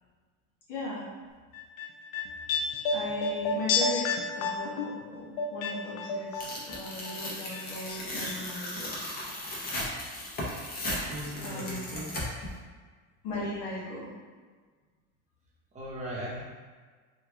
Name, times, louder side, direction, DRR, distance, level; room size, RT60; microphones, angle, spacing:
voice 1, 0.7-1.1 2.9-4.1 4.3-9.0 11.4-12.0 13.2-14.1, left 2 dB, 90° left, -6 dB, 1.3 m, -38 dB
sound 1, 1.5-6.8 7.0-8.0 8.2-8.3, left 4 dB, 70° left, 0.5 m, -31 dB
Tearing, 6.4-12.5, left 1 dB, 30° left, 0.7 m, -36 dB
voice 2, 11.0-12.2 15.7-16.4, equal, 20° right, -7 dB, 0.7 m, -38 dB
3.0 x 2.2 x 3.4 m, 1.5 s
cardioid pair, 155°, 33 cm